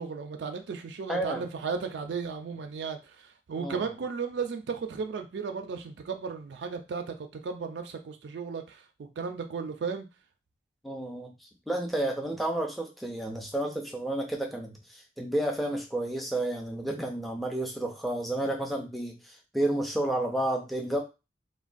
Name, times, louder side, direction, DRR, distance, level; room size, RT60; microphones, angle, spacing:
voice 1, 0.0-10.1, right 5 dB, 70° right, 5 dB, 0.4 m, -35 dB
voice 2, 1.1-1.4 3.6-3.8 10.8-11.3 11.7-19.2 19.5-21.0, right 1 dB, ahead, 1 dB, 0.4 m, -31 dB
3.0 x 2.1 x 2.5 m, 0.28 s
head